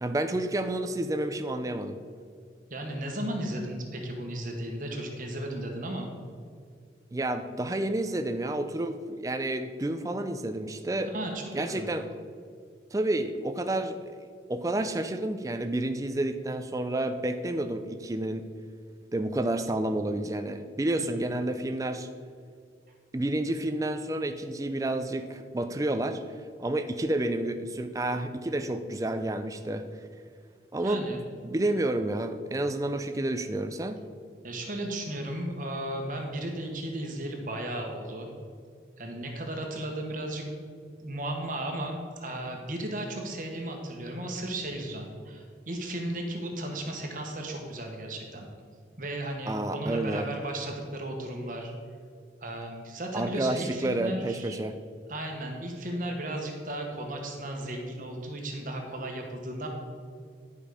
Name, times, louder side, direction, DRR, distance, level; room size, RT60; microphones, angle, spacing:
voice 1, 0.0-2.0 7.1-11.1 11.5-12.0 12.9-14.2 14.5-18.4 19.1-22.1 23.1-26.2 26.6-29.9 30.7-31.1 31.4-34.0 49.5-50.3 53.1-54.8, right 1 dB, 20° right, 8 dB, 0.4 m, -30 dB
voice 2, 2.7-6.1 11.1-11.9 21.0-21.2 30.8-31.2 34.4-38.3 39.0-40.6 41.0-48.5 49.0-51.7 52.4-54.6 55.1-59.7, right 1 dB, 45° right, 2 dB, 1.2 m, -35 dB
10.5 x 5.4 x 4.9 m, 2.1 s
head